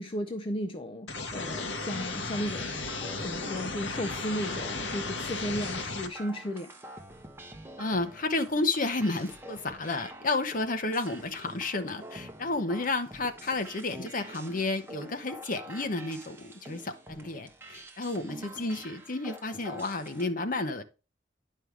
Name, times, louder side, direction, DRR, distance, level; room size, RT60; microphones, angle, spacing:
voice 1, 0.0-2.7 3.2-6.8, equal, 30° left, 0.5 m, -34 dB
sound 1, 1.1-6.1, left 3 dB, 70° left, 1.3 m, -35 dB
sound 2, 1.8-20.3, right 1 dB, 15° right, 1.2 m, -47 dB
voice 2, 7.8-20.8, left 2 dB, 50° left, 1.1 m, -31 dB
9.9 x 5.6 x 3.2 m
head